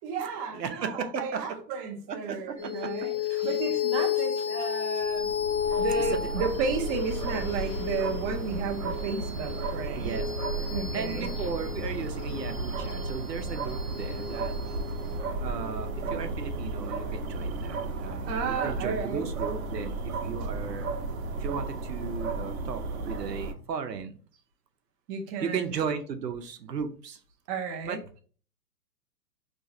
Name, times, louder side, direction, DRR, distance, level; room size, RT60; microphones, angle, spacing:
voice 1, 0.0-3.2 3.4-5.3 5.8-10.2 10.7-11.3 18.3-19.3 25.1-25.7 27.5-28.0, right 5 dB, 20° right, 4 dB, 0.6 m, -33 dB
voice 2, 0.5-1.4 2.1-2.9 3.2-3.5 6.2-6.3 9.9-10.3 10.9-14.5 15.4-20.9 21.4-24.2 25.4-27.2 27.8-28.0, right 6 dB, 85° right, 7 dB, 0.8 m, -35 dB
sound 1, 2.6-17.3, left 8 dB, 25° left, 0.4 m, -33 dB
sound 2, 5.0-23.5, right 3 dB, 60° right, 0.9 m, -34 dB
4.7 x 3.1 x 2.7 m, 0.42 s
hypercardioid pair, 125°, 48 cm